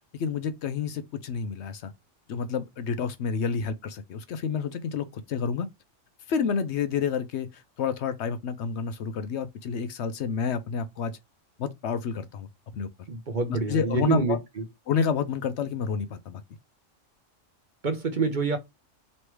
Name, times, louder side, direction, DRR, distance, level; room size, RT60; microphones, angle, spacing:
voice 1, 0.1-1.9 2.3-5.7 6.3-11.2 11.6-12.5 12.7-12.9 13.5-14.4 14.9-16.4, left 6 dB, 65° left, 0.8 m, -29 dB
voice 2, 13.1-14.4 17.8-18.6, right 4 dB, 45° right, 0.8 m, -26 dB
3.3 x 3.1 x 4.4 m
omnidirectional pair, 1.3 m